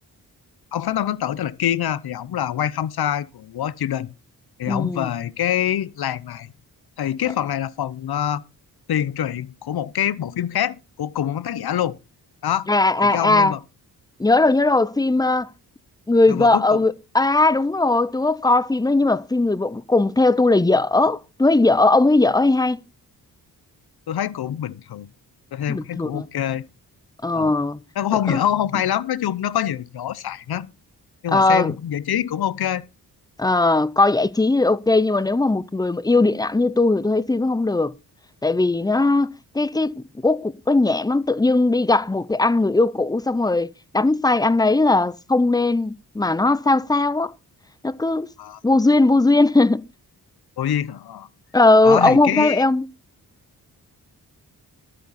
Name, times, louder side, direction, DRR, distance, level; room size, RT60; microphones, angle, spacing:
voice 1, 0.7-4.1 4.6-6.5 7.0-8.4 8.9-12.0 12.4-12.7 13.0-13.6 16.3-16.8 24.1-25.1 25.5-26.6 27.3-27.5 28.0-30.7 31.2-32.8 39.0-39.1 48.4-48.6 50.6-51.3 51.8-52.6, left 10 dB, 65° left, 0.8 m, -25 dB
voice 2, 4.7-5.1 12.7-13.6 14.2-15.5 16.1-22.8 25.7-26.3 27.2-27.8 28.3-28.4 31.3-31.7 33.4-37.9 38.4-47.3 47.8-48.3 48.6-49.8 51.5-52.8, left 2 dB, 10° left, 0.6 m, -19 dB
12.5 x 7.7 x 4.2 m
cardioid pair, 65°, 41 cm